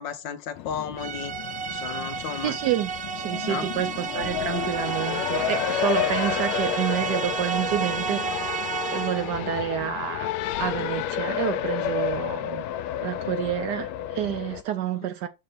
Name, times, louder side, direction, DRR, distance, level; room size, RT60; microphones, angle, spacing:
voice 1, 0.0-1.3 1.7-2.6 3.5-3.7 14.9-15.1, left 7 dB, 70° left, 1.5 m, -34 dB
Race car auto racing, 0.6-14.6, left 11 dB, 85° left, 1.4 m, -31 dB
sound 1, 1.0-9.4, right 6 dB, 55° right, 0.7 m, -31 dB
voice 2, 2.4-10.3 10.6-12.6 13.0-15.3, right 11 dB, 75° right, 1.0 m, -29 dB
6.5 x 4.2 x 4.3 m
omnidirectional pair, 2.2 m